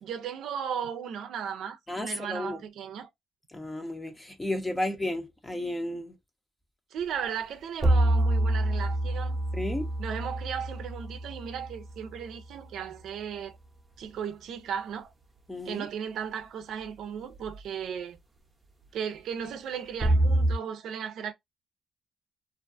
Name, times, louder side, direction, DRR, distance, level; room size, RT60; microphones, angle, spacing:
voice 1, 0.0-3.1 6.9-9.4 10.0-13.6 14.0-15.1 15.6-18.2 18.9-21.3, right 8 dB, 75° right, 0.5 m, -36 dB
voice 2, 1.9-2.6 3.5-6.2 9.5-9.9 15.5-15.8, left 1 dB, 15° left, 0.7 m, -33 dB
sound 1, 7.0-7.1 7.8-12.3 17.3-17.6 20.0-20.6, right 1 dB, 20° right, 0.7 m, -26 dB
2.5 x 2.2 x 2.6 m
cardioid pair, 90°, 0 cm